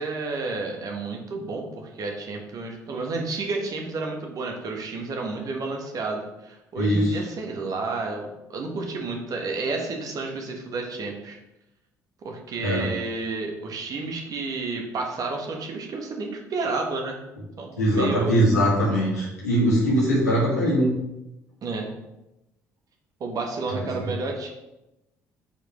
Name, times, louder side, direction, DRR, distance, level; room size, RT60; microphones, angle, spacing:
voice 1, 0.0-11.4 12.2-17.2 17.6-18.3 21.6-21.9 23.2-24.5, right 3 dB, 45° right, 1 dB, 1.6 m, -31 dB
voice 2, 6.7-7.2 12.6-12.9 17.8-21.0 23.7-23.9, equal, 80° left, -7 dB, 2.7 m, -21 dB
8.4 x 5.1 x 3.3 m, 0.92 s
figure-of-eight pair, 50°, 9 cm